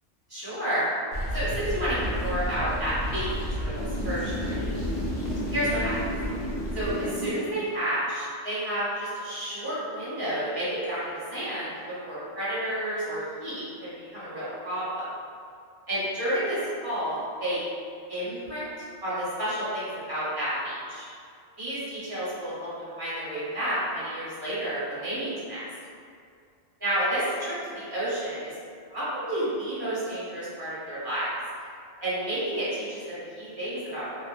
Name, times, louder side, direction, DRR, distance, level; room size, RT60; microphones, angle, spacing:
voice 1, 0.3-0.8 1.3-4.7 5.5-5.9 6.7-11.7 12.0-15.1 15.9-16.6 16.8-17.6 18.1-18.7 19.0-21.0 21.6-25.6 26.8-28.5 28.9-31.3 32.0-34.2, right 1 dB, 20° right, -11 dB, 1.0 m, -30 dB
sound 1, 1.1-7.4, equal, 65° left, 0.7 m, -31 dB
2.7 x 2.3 x 2.4 m, 2.2 s
omnidirectional pair, 1.2 m